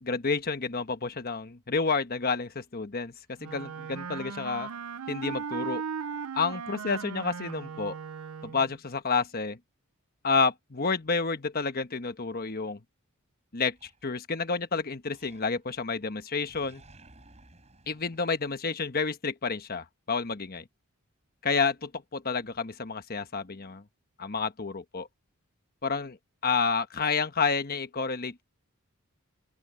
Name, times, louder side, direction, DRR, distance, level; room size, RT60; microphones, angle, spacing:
voice 1, 0.0-3.1 3.4-4.7 5.1-5.8 6.3-8.0 8.4-9.6 10.2-12.8 13.5-16.8 17.9-20.6 21.4-23.8 24.2-25.1 25.8-26.2 26.4-28.4, left 4 dB, 45° left, 1.2 m, -30 dB
Wind instrument woodwind instrument, 3.4-8.8, right 6 dB, 75° right, 0.5 m, -37 dB
Animal, 13.7-14.6 15.1-15.9 16.1-19.1, right 2 dB, 30° right, 6.2 m, -57 dB
open air
head